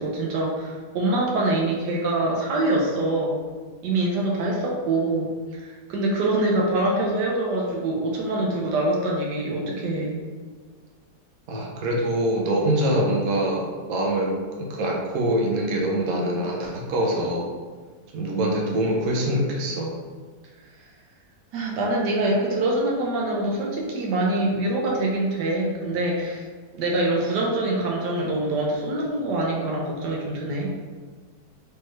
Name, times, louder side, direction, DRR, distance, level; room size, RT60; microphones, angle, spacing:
voice 1, 0.0-3.4 3.8-10.2 18.3-18.5 21.5-26.4 26.7-30.7, right 2 dB, 80° right, -2 dB, 1.3 m, -24 dB
voice 2, 11.5-14.4 14.7-17.5 18.1-20.0, right 1 dB, 65° right, -2 dB, 1.1 m, -24 dB
3.3 x 3.3 x 3.1 m, 1.5 s
omnidirectional pair, 1.8 m